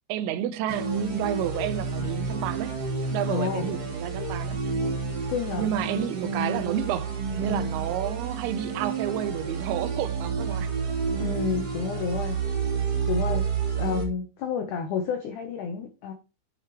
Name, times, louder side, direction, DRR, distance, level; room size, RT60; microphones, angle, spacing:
voice 1, 0.1-2.8 3.1-4.6 5.6-10.7, right 11 dB, 85° right, 2.6 m, -30 dB
sound 1, 0.7-14.0, right 5 dB, 50° right, 4.2 m, -30 dB
voice 2, 3.3-3.6 5.3-5.7 11.2-12.4 13.1-13.4 13.8-16.1, left 6 dB, 75° left, 1.9 m, -30 dB
9.8 x 5.9 x 3.0 m
omnidirectional pair, 4.7 m